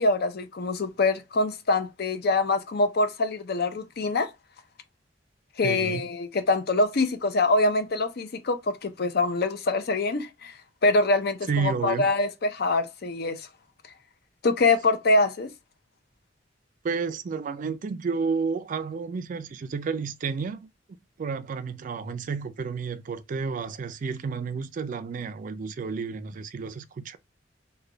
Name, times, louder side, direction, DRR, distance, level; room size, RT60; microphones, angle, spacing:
voice 1, 0.0-4.3 5.6-10.5 10.8-13.5 14.4-15.5, left 2 dB, 60° left, 0.5 m, -24 dB
voice 2, 5.6-6.0 11.5-12.1 16.8-20.7 21.2-27.2, right 5 dB, 45° right, 0.3 m, -31 dB
3.2 x 2.2 x 3.7 m
head